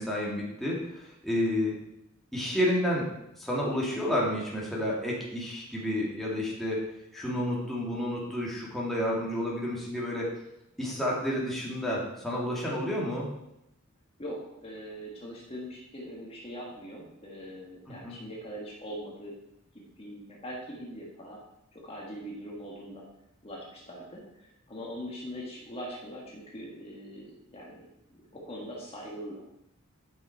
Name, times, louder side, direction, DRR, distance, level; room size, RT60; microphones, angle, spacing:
voice 1, 0.0-1.8 2.3-3.1 3.4-6.8 7.1-10.3 10.8-13.3 17.9-18.2, left 1 dB, ahead, -5 dB, 1.9 m, -30 dB
voice 2, 14.2-19.3 19.7-21.4 21.7-23.1 23.4-29.4, equal, 30° left, -3 dB, 1.6 m, -42 dB
9.4 x 5.8 x 4.5 m, 0.84 s
head